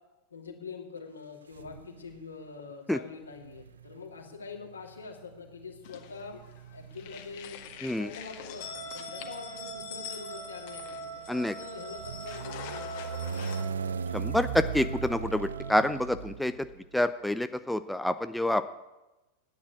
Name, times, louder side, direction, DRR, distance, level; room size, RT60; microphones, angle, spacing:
voice 1, 0.3-6.4 6.7-7.6 8.0-13.3, left 5 dB, 75° left, 1 dB, 2.5 m, -44 dB
sound 1, 1.5-2.2 3.3-17.0, right 6 dB, 70° right, 0.5 m, -39 dB
sound 2, 5.8-6.6 6.9-13.6, left 8 dB, 50° left, 1.6 m, -45 dB
Trumpet, 8.5-15.9, right 4 dB, 90° right, 3.4 m, -44 dB
voice 2, 14.1-16.7 16.9-18.7, left 1 dB, 5° left, 10 dB, 0.6 m, -28 dB
12.5 x 9.6 x 8.5 m, 1.1 s
figure-of-eight pair, 90°, 0 cm